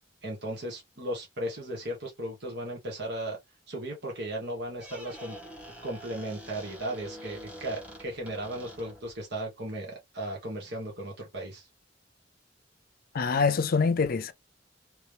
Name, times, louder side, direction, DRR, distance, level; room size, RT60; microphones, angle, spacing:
voice 1, 0.2-3.4 3.7-5.4 5.8-11.7, right 1 dB, 65° right, 1.5 m, -36 dB
Squeak, 4.7-9.2, equal, 10° right, 1.7 m, -46 dB
voice 2, 13.1-14.3, left 5 dB, 55° left, 0.5 m, -25 dB
3.2 x 3.1 x 3.3 m
head